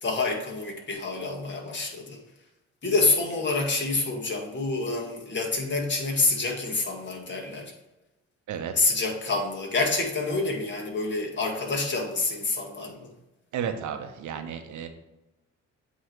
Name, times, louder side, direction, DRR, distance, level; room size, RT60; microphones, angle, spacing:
voice 1, 0.0-2.2 2.8-7.7 8.8-13.1, left 3 dB, 40° left, 1 dB, 1.8 m, -27 dB
voice 2, 8.5-8.8 13.5-14.9, right 7 dB, 75° right, 7 dB, 0.9 m, -33 dB
8.1 x 3.2 x 4.5 m, 1.0 s
cardioid pair, 90°, 30 cm